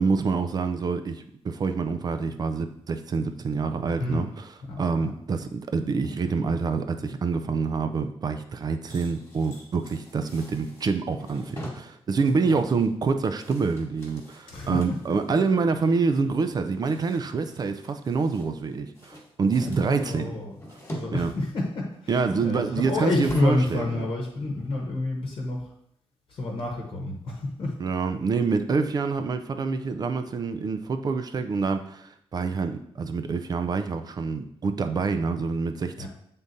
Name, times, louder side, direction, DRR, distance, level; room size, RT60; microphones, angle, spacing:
voice 1, 0.0-4.3 4.8-20.3 21.1-21.3 22.1-24.1 27.8-36.1, right 4 dB, 40° right, 8 dB, 0.4 m, -26 dB
voice 2, 4.7-5.1 12.5-12.6 14.5-15.0 19.5-20.5 20.9-25.7 26.3-27.7 36.0-36.1, left 2 dB, 55° left, 0 dB, 1.0 m, -29 dB
sound 1, 8.9-15.5 15.9-16.2 16.5-18.7 18.9-21.1 21.4-23.7 24.0-24.2 24.6-24.7, equal, 25° left, 1.4 m, -43 dB
7.8 x 3.7 x 4.0 m, 0.72 s
wide cardioid pair, 175°, 11 cm